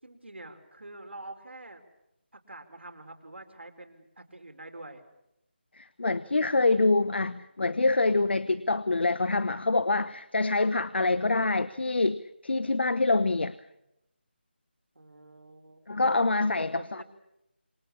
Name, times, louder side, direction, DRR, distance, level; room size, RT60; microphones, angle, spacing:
voice 1, 0.0-1.8 2.3-5.0 14.9-16.0 16.5-17.0, right 2 dB, 80° right, 5 dB, 4.6 m, -46 dB
voice 2, 5.7-13.5 15.9-17.0, left 3 dB, 70° left, 16 dB, 1.0 m, -26 dB
28.0 x 23.0 x 7.2 m, 0.85 s
figure-of-eight pair, 165°, 6 cm